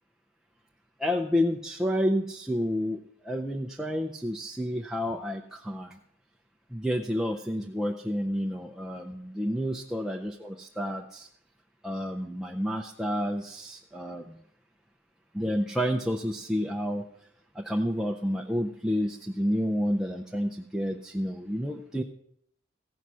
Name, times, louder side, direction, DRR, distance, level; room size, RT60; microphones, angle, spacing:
voice 1, 1.0-6.0 6.7-11.3 11.8-14.4 15.3-17.0 17.5-22.0, equal, 5° right, 1 dB, 0.4 m, -30 dB
15.0 x 5.7 x 6.2 m, 0.69 s
head